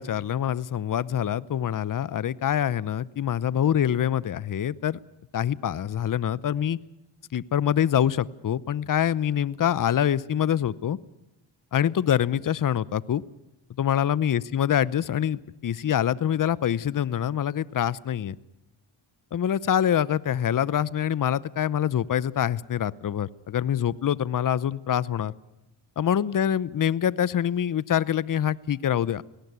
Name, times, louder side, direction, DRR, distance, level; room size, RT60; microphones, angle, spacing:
voice 1, 0.0-5.0 5.3-6.8 7.3-11.0 11.7-13.2 13.8-18.4 19.3-25.3 26.0-29.2, left 9 dB, 40° left, 20 dB, 0.8 m, -25 dB
18.5 x 18.0 x 9.4 m, 0.92 s
cardioid pair, 60°, 48 cm